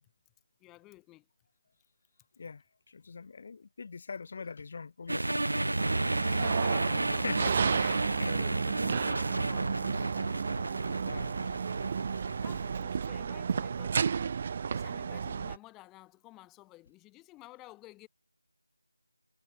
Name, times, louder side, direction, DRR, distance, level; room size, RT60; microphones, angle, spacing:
voice 1, 0.6-1.3 4.4-4.5 6.2-7.3 7.9-10.1 12.4-18.1, left 19 dB, 10° left, 1.8 m, -53 dB
voice 2, 2.4-5.5 7.1-8.4 9.2-9.3 11.0-11.4, left 5 dB, 35° left, 4.4 m, -42 dB
sound 1, 5.1-12.8, right 2 dB, 80° right, 2.3 m, -32 dB
sound 2, 5.8-15.6, right 6 dB, 30° right, 1.0 m, -32 dB
figure-of-eight pair, 170°, 0 cm